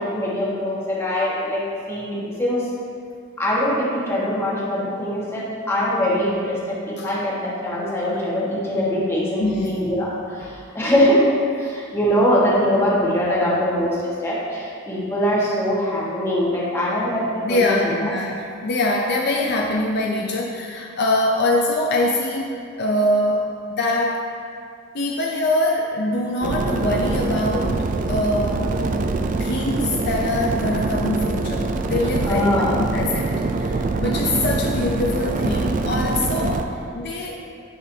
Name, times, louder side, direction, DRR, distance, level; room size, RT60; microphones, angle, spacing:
voice 1, 0.0-1.6 1.9-2.6 3.4-10.1 10.4-11.3 11.6-17.8 32.3-32.8 35.6-35.7, equal, 15° left, -7 dB, 1.5 m, -22 dB
voice 2, 9.4-9.8 10.4-10.5 17.4-22.5 22.8-24.2 24.9-28.7 29.4-37.4, left 1 dB, 55° left, -1 dB, 0.5 m, -23 dB
sound 1, 26.4-36.6, right 3 dB, 40° right, 0.3 m, -24 dB
9.8 x 6.2 x 2.8 m, 2.3 s
head